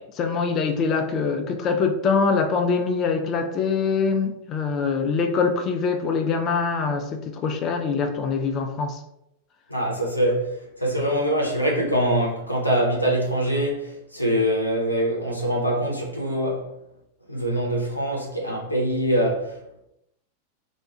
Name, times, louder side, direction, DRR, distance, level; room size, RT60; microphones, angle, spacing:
voice 1, 0.0-9.0, left 5 dB, 35° left, 0.3 m, -24 dB
voice 2, 9.7-10.5 10.8-16.7 17.3-19.8, equal, 90° left, 0.6 m, -24 dB
2.3 x 2.1 x 2.9 m
figure-of-eight pair, 90°, 0 cm